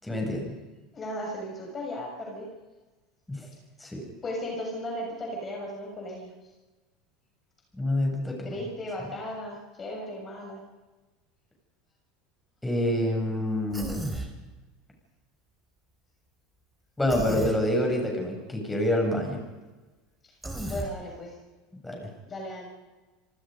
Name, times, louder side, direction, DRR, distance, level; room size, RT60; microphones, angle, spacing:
voice 1, 0.0-0.5 3.3-3.4 3.8-4.0 7.8-8.5 12.6-14.0 17.0-19.4 21.8-22.1, left 1 dB, 10° left, 1 dB, 7.7 m, -27 dB
voice 2, 0.9-2.5 4.2-6.3 8.4-10.6 20.2-20.3 20.6-21.4 22.3-22.7, left 1 dB, 30° left, 0 dB, 6.7 m, -36 dB
Human voice, 13.7-14.3 17.1-17.6 20.4-20.9, right 1 dB, 10° right, 4.6 m, -33 dB
28.0 x 19.5 x 5.4 m, 1.2 s
hypercardioid pair, 85°, 0 cm